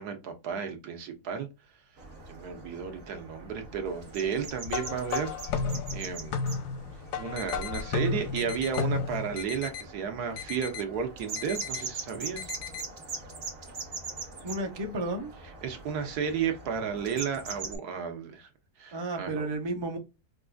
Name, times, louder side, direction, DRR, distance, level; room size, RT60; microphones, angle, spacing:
voice 1, 0.0-1.5 2.3-5.4 5.9-6.4 7.2-12.5 15.6-18.5 18.8-19.5, right 7 dB, 75° right, 1.4 m, -33 dB
sound 1, 2.0-17.8, right 4 dB, 55° right, 1.6 m, -42 dB
sound 2, 4.7-9.4, left 5 dB, 85° left, 1.2 m, -32 dB
sound 3, 7.4-7.8 8.4-8.8 9.4-9.8 10.4-10.8 11.4-11.8 12.4-12.8, left 10 dB, 70° left, 0.8 m, -39 dB
voice 2, 14.4-15.3 18.9-20.0, right 2 dB, 35° right, 0.4 m, -32 dB
5.3 x 2.5 x 2.3 m
omnidirectional pair, 1.7 m